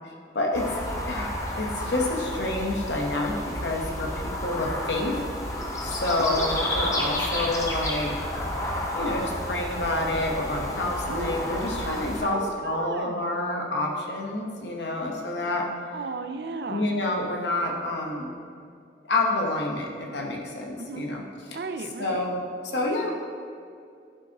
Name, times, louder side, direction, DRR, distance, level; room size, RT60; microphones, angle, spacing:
voice 1, 0.3-0.7 1.1-5.1 5.8-8.1 8.9-15.7 16.7-18.3 19.0-21.2 21.5-21.6 22.0-23.1, left 2 dB, 80° left, 0 dB, 1.1 m, -28 dB
sound 1, 0.5-12.2, left 1 dB, 20° left, 0.8 m, -31 dB
voice 2, 11.1-11.4 12.2-13.2 15.4-15.5 15.9-16.9 20.8-21.0 21.5-22.3, right 4 dB, 65° right, 8 dB, 0.5 m, -34 dB
11.0 x 5.3 x 2.9 m, 2.3 s
head